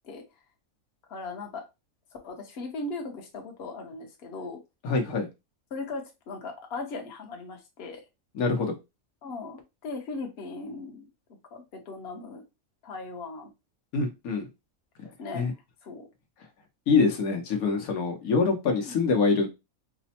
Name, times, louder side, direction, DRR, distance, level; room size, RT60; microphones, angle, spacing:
voice 1, 1.1-1.6 2.2-4.6 5.7-8.0 9.2-11.1 11.5-12.5 12.8-13.5 15.0-15.4 15.8-16.1 18.9-19.0, left 3 dB, 50° left, 1.0 m, -38 dB
voice 2, 4.8-5.3 8.3-8.7 13.9-14.5 15.3-15.5 16.9-19.5, left 4 dB, 85° left, 1.3 m, -25 dB
5.0 x 2.0 x 2.8 m
omnidirectional pair, 1.5 m